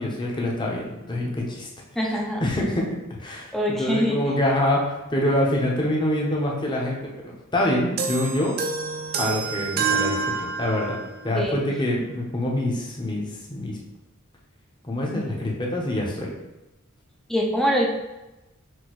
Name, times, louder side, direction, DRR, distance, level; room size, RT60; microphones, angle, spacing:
voice 1, 0.0-1.7 2.4-8.5 9.2-13.8 14.8-16.3, left 1 dB, 20° left, -2 dB, 0.8 m, -26 dB
voice 2, 2.0-2.4 3.5-4.2 11.3-11.6 17.3-17.9, equal, ahead, -1 dB, 0.5 m, -23 dB
sound 1, 8.0-11.2, right 5 dB, 45° right, 0.5 m, -27 dB
6.1 x 2.7 x 3.1 m, 1.0 s
head